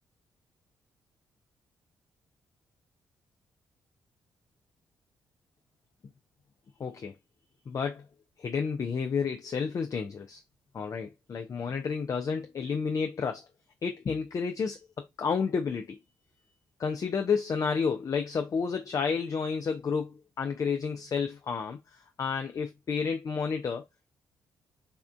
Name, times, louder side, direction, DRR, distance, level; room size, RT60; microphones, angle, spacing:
voice 1, 6.8-7.1 7.7-8.1 8.4-10.4 10.7-13.4 13.8-14.8 15.2-16.0 16.8-23.8, left 5 dB, 40° left, 0.4 m, -31 dB
3.4 x 2.4 x 2.2 m
hypercardioid pair, 45°, 9 cm